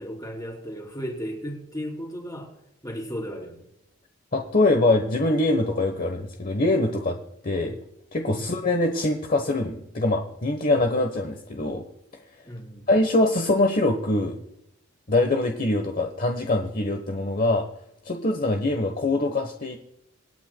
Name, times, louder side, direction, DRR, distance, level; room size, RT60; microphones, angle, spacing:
voice 1, 0.0-2.5 2.8-3.6 8.3-8.5 12.5-12.9, equal, 20° left, 1 dB, 3.2 m, -35 dB
voice 2, 4.3-7.2 7.4-7.8 8.1-11.8 12.9-14.4 15.1-17.7 18.0-19.8, left 2 dB, 45° left, 4 dB, 1.1 m, -23 dB
26.0 x 9.1 x 2.2 m, 0.80 s
head